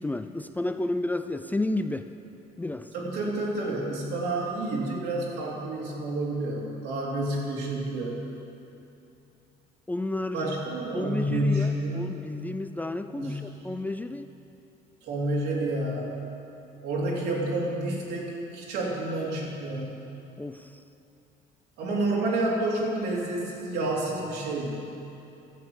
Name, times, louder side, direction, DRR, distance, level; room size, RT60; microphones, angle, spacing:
voice 1, 0.0-2.1 2.6-2.9 9.9-10.5 10.9-14.3 20.4-20.8, left 2 dB, 10° left, 9 dB, 0.3 m, -31 dB
voice 2, 2.9-8.2 10.3-12.1 13.2-13.6 15.0-16.1 16.8-20.0 21.8-24.8, right 2 dB, 80° right, -3 dB, 2.9 m, -29 dB
12.0 x 7.1 x 7.8 m, 2.8 s
cardioid pair, 110°, 17 cm